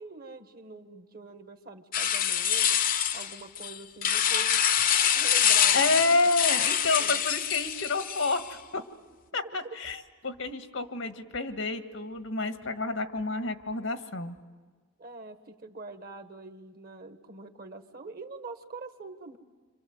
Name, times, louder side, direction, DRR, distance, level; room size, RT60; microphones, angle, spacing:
voice 1, 0.0-2.7 3.1-4.6 5.1-6.0 7.0-7.2 9.4-9.8 15.0-19.4, right 3 dB, 50° right, 8 dB, 1.5 m, -44 dB
sound 1, 1.9-8.5, left 9 dB, 45° left, 0.7 m, -25 dB
voice 2, 5.7-8.8 9.3-14.4, left 3 dB, 85° left, 8 dB, 1.6 m, -29 dB
27.0 x 26.5 x 7.9 m, 1.4 s
head